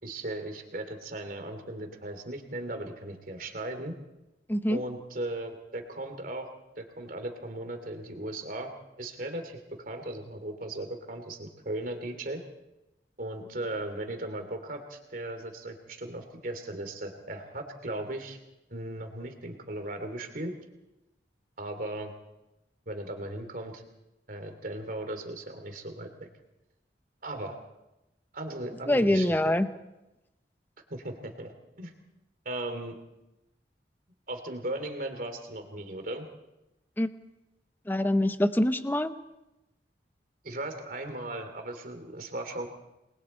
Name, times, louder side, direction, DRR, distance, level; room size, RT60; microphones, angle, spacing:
voice 1, 0.0-3.9 4.7-6.5 6.8-8.7 9.0-12.4 13.2-18.4 18.7-20.5 21.6-22.1 22.9-23.8 24.3-26.3 27.2-27.6 28.3-29.4 30.9-31.9 32.4-32.9 34.3-36.3 40.4-42.7, right 1 dB, 50° right, 5 dB, 2.8 m, -37 dB
voice 2, 4.5-4.8 28.9-29.7 37.0-37.1 37.9-39.1, left 1 dB, 10° left, 10 dB, 0.8 m, -24 dB
28.5 x 21.5 x 4.4 m, 0.96 s
head